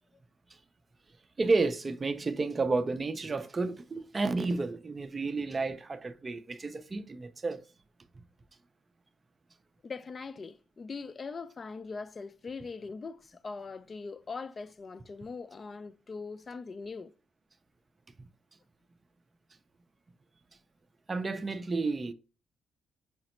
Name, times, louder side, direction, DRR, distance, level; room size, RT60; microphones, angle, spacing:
voice 1, 1.4-7.6 21.1-22.1, right 3 dB, 30° right, 0.4 m, -31 dB
voice 2, 9.8-17.1, left 4 dB, 35° left, 0.3 m, -41 dB
5.0 x 2.0 x 4.2 m
cardioid pair, 90°, 0 cm